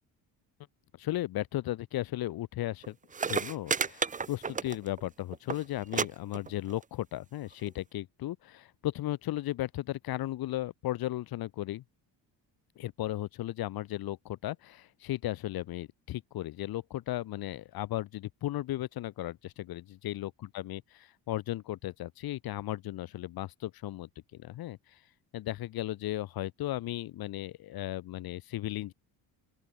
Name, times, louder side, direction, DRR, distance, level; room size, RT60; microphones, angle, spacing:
voice 1, 1.0-3.0 3.3-11.8 12.8-25.0 25.3-28.9, left 15 dB, 65° left, 6.6 m, -36 dB
sound 1, 2.8-2.9 3.1-5.1 5.3-5.6 5.9-6.1 6.3-6.8 7.7-7.8, right 5 dB, 20° right, 1.7 m, -31 dB
open air
cardioid pair, 180°, 39 cm